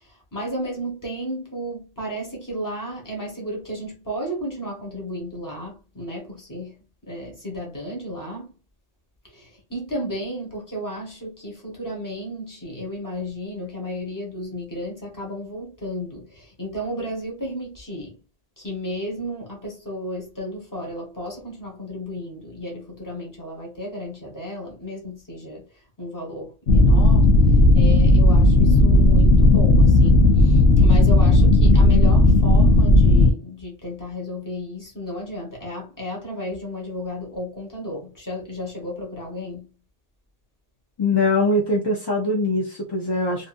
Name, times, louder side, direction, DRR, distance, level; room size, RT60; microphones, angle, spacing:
voice 1, 0.0-8.5 9.2-18.2 18.6-25.7 26.0-27.4 27.7-39.8, equal, 20° left, 1.0 m, -33 dB
sound 1, 26.7-33.3, left 1 dB, 80° left, 0.8 m, -14 dB
voice 2, 41.0-43.5, left 2 dB, 35° left, 0.4 m, -22 dB
2.7 x 2.4 x 2.4 m
omnidirectional pair, 1.1 m